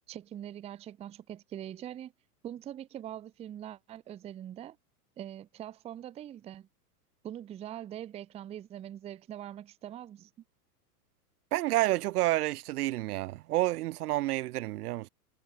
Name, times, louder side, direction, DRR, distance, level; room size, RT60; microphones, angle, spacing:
voice 1, 0.1-2.1 2.4-4.8 5.2-6.7 7.2-10.3, right 11 dB, 15° right, 0.5 m, -43 dB
voice 2, 11.5-15.1, right 16 dB, 70° right, 0.8 m, -29 dB
hypercardioid pair, 125°, 47 cm